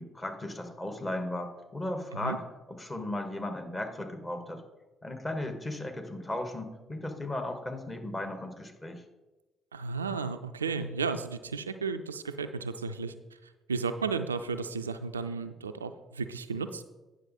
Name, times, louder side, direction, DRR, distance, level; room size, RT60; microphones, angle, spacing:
voice 1, 0.0-2.4 2.7-4.6 5.0-9.0, left 1 dB, 20° left, 4 dB, 1.6 m, -36 dB
voice 2, 9.7-13.1 13.7-16.8, right 4 dB, 85° right, 9 dB, 0.3 m, -33 dB
9.5 x 6.3 x 4.2 m, 1.1 s
figure-of-eight pair, 45°, 0 cm